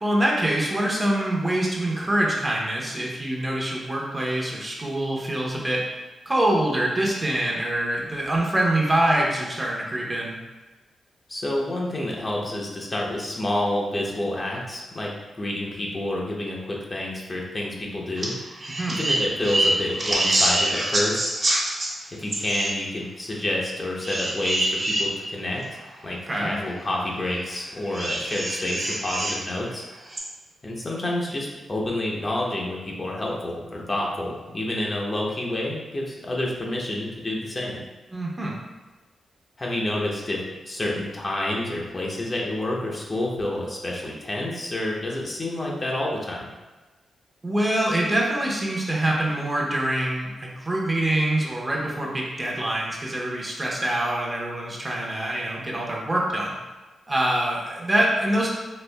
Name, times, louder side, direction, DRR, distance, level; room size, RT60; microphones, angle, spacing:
voice 1, 0.0-5.8 6.3-10.4 18.7-19.0 26.3-26.5 38.1-38.5 47.4-56.6 57.1-58.5, right 1 dB, 25° right, -3 dB, 0.9 m, -25 dB
voice 2, 11.3-15.1 15.4-18.3 18.9-21.3 22.2-25.6 26.0-29.8 30.6-37.8 39.6-40.4 40.7-46.5, left 1 dB, 35° left, -3 dB, 0.7 m, -28 dB
sound 1, 18.2-18.3 18.6-21.9 22.3-22.7 24.0-25.0 25.8-25.9 27.9-29.4 30.1-30.2, right 1 dB, 50° right, 1.1 m, -25 dB
4.1 x 2.7 x 2.3 m, 1.2 s
cardioid pair, 65°, 0 cm